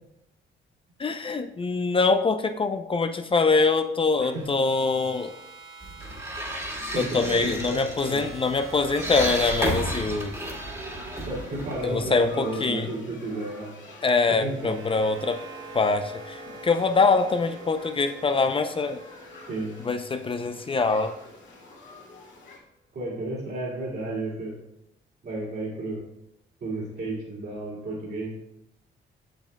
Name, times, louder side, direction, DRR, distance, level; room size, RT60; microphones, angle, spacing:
voice 1, 1.0-5.3 7.0-10.4 11.8-12.9 14.0-15.4 15.7-19.0 19.8-21.2, left 4 dB, 25° left, 8 dB, 0.4 m, -24 dB
sound 1, 4.3-22.4, right 3 dB, 85° right, 1.2 m, -47 dB
sound 2, 5.8-12.3, right 1 dB, 15° right, 2.0 m, -32 dB
sound 3, 6.5-22.6, left 3 dB, 70° left, 2.2 m, -48 dB
voice 2, 6.9-8.2 11.3-13.7 14.3-14.8 19.5-19.8 22.9-24.6 25.2-26.1 26.6-28.4, right 2 dB, 55° right, -6 dB, 2.5 m, -32 dB
7.5 x 7.4 x 2.2 m, 0.82 s
cardioid pair, 90°, 20 cm